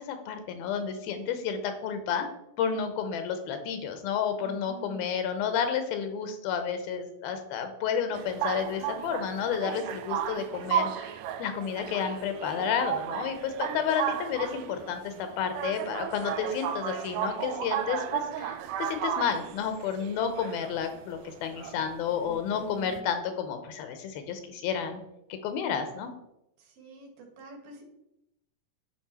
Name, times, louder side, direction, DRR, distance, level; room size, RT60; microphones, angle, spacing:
voice 1, 0.0-2.3 2.6-11.1 11.4-25.0 25.3-26.1, left 7 dB, 85° left, 8 dB, 2.8 m, -31 dB
voice 2, 4.4-5.0 22.3-23.0 26.6-27.8, right 3 dB, 70° right, 1 dB, 3.3 m, -47 dB
sound 1, 8.1-23.0, right 9 dB, 90° right, 1.8 m, -34 dB
11.0 x 5.6 x 4.3 m, 0.85 s
omnidirectional pair, 4.3 m